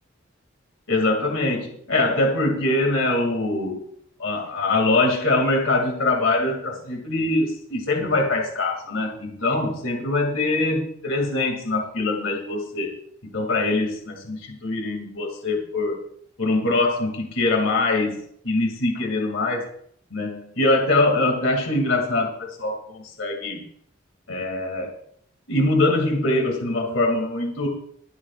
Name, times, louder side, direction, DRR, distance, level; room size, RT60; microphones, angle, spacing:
voice 1, 0.9-3.8 4.2-12.9 13.2-16.0 16.4-19.7 20.1-23.7 24.3-25.0 25.5-27.7, left 2 dB, 75° left, 1 dB, 2.6 m, -23 dB
24.0 x 8.9 x 2.5 m, 0.65 s
head